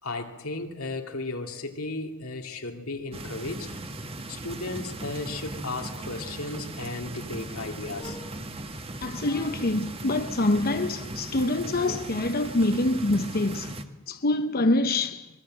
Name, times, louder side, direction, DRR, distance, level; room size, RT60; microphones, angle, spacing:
voice 1, 0.0-3.7 4.3-8.2, left 2 dB, 85° left, 2.8 m, -35 dB
sound 1, 3.1-13.8, right 2 dB, 25° right, 1.4 m, -38 dB
sound 2, 8.0-8.8 9.2-9.9 10.5-12.3, left 3 dB, 20° left, 1.5 m, -46 dB
voice 2, 9.0-13.8 14.1-15.3, left 2 dB, 45° left, 0.8 m, -25 dB
25.0 x 22.5 x 7.8 m
head